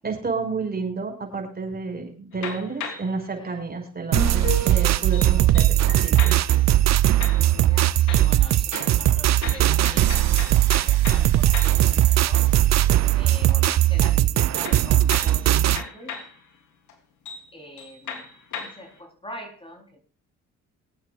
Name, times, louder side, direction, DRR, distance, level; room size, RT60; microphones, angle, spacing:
voice 1, 0.0-6.4, right 4 dB, 30° right, 3 dB, 5.8 m, -31 dB
sound 1, 2.3-3.2 4.1-6.7 7.2-7.8 8.1-11.9 12.3-13.2 14.6-16.4 16.9-17.0 17.3-17.5 17.8-18.9, left 6 dB, 70° left, 3.4 m, -36 dB
sound 2, 4.1-15.8, right 13 dB, 60° right, 0.7 m, -19 dB
voice 2, 7.4-12.6 13.1-16.1 17.5-18.2 18.6-20.0, equal, 15° left, 2 dB, 3.9 m, -43 dB
25.0 x 8.6 x 2.5 m, 0.35 s
cardioid pair, 90°, 30 cm